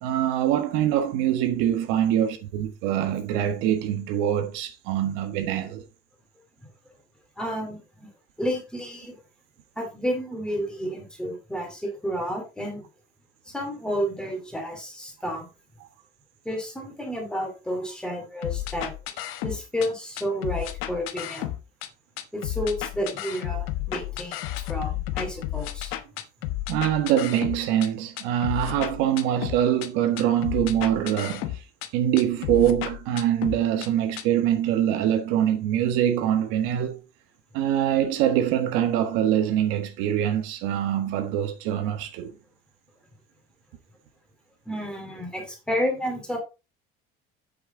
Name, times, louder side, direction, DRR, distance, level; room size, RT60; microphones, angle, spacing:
voice 1, 0.0-5.8 26.7-31.6 31.9-37.0 37.5-42.3, right 11 dB, 80° right, 1.4 m, -24 dB
voice 2, 7.4-8.1 8.4-9.2 9.8-12.8 13.5-15.5 16.4-18.9 19.4-21.5 22.3-25.9 44.7-46.4, equal, 5° left, 2.5 m, -31 dB
sound 1, 18.4-19.9 20.2-21.9 22.2-27.9 28.2-29.9 30.2-31.9 32.2-33.9 34.2-34.3, left 14 dB, 75° left, 1.1 m, -32 dB
8.2 x 6.6 x 3.8 m
cardioid pair, 180°, 20 cm